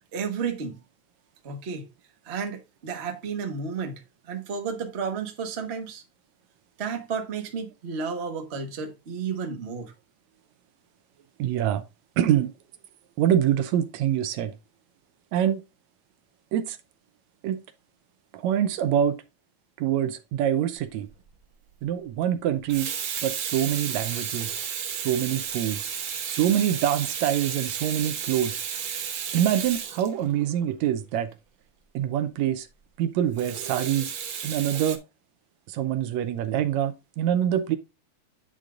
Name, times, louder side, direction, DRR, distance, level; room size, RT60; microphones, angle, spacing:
voice 1, 0.1-0.8 1.4-1.9 2.2-6.0 6.8-9.9, right 5 dB, 40° right, 0.9 m, -32 dB
voice 2, 11.4-11.8 12.2-12.5 13.2-14.5 15.3-15.6 16.5-16.8 17.4-17.6 18.3-19.2 19.8-21.1 21.8-22.9 23.2-24.6 24.9-25.9 26.3-28.6 29.3-31.3 31.9-32.7 33.0-34.1 34.4-35.0 35.7-37.8, right 10 dB, 80° right, 1.9 m, -25 dB
Water tap faucet / Sink (filling or washing), 20.9-21.2 22.5-30.7 33.4-35.0, right 7 dB, 60° right, 1.4 m, -33 dB
9.9 x 3.6 x 3.8 m
omnidirectional pair, 3.3 m